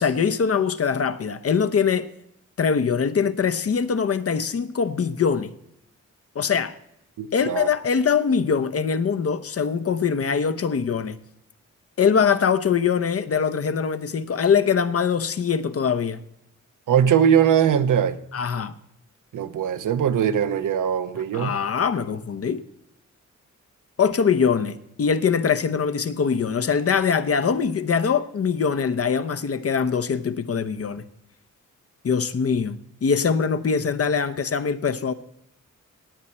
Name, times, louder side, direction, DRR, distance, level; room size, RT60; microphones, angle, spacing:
voice 1, 0.0-2.1 2.6-5.5 6.3-6.8 7.3-11.2 12.0-16.2 18.3-18.7 21.3-22.6 24.0-31.0 32.0-35.1, left 6 dB, 50° left, 0.8 m, -23 dB
voice 2, 7.2-7.7 16.9-18.2 19.3-21.6, right 8 dB, 80° right, 0.8 m, -21 dB
18.0 x 8.5 x 4.3 m
cardioid pair, 90°, 31 cm